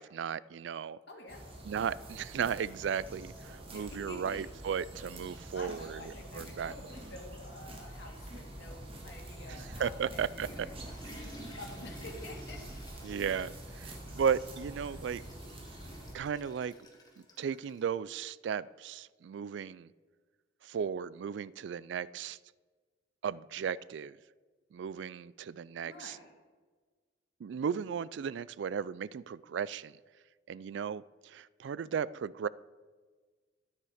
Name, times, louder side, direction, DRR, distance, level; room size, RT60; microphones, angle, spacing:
voice 1, 0.0-1.0 1.6-6.7 9.5-10.5 11.0-11.3 13.0-15.2 16.1-16.7 17.4-19.9 20.6-22.4 23.2-24.2 24.7-26.2 27.4-29.9 30.5-32.5, right 7 dB, 65° right, 0.3 m, -35 dB
voice 2, 1.1-1.5 3.7-4.4 5.5-12.7 14.1-14.2 25.8-26.3, left 2 dB, 60° left, 2.3 m, -49 dB
sound 1, 1.3-16.1, right 1 dB, 30° right, 1.9 m, -46 dB
sound 2, 3.1-14.8, right 1 dB, 45° right, 1.0 m, -56 dB
Water / Toilet flush, 10.2-17.9, left 1 dB, 20° left, 1.6 m, -53 dB
13.0 x 9.6 x 5.0 m
head